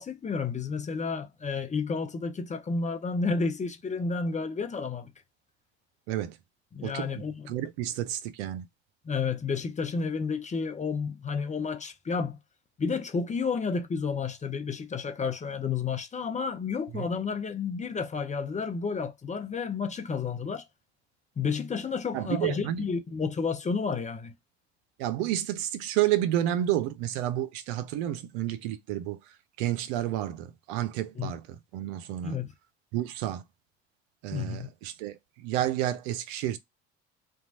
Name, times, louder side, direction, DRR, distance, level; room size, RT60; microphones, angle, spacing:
voice 1, 0.0-5.1 6.7-7.6 9.1-12.4 12.8-20.7 21.4-24.3 31.2-31.3 32.2-32.5 34.3-34.7, left 5 dB, 20° left, 0.6 m, -31 dB
voice 2, 6.8-8.7 16.9-17.2 22.1-22.9 25.0-29.2 29.6-32.4 32.9-33.4 34.2-36.6, right 12 dB, 70° right, 0.6 m, -30 dB
3.0 x 2.3 x 2.6 m
hypercardioid pair, 60°, 33 cm